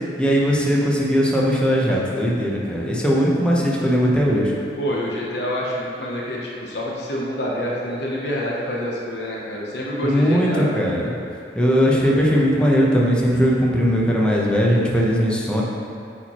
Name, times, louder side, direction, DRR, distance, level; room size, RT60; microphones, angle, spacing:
voice 1, 0.2-4.5 10.0-11.1 11.5-15.6, equal, 5° left, -4 dB, 0.8 m, -19 dB
voice 2, 4.8-10.7, equal, 70° left, -4 dB, 0.9 m, -27 dB
8.3 x 4.5 x 3.0 m, 2.5 s
head